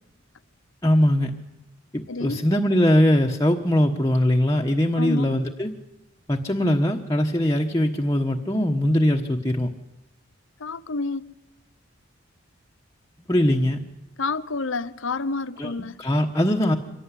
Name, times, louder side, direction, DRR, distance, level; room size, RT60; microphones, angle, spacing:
voice 1, 0.8-1.3 1.9-5.7 6.3-9.7 13.3-13.8 15.6-15.7 16.0-16.7, left 1 dB, 15° left, 1.2 m, -21 dB
voice 2, 2.1-2.4 5.0-5.3 10.6-11.2 14.2-16.0, left 3 dB, 70° left, 0.9 m, -29 dB
25.0 x 17.5 x 9.9 m
head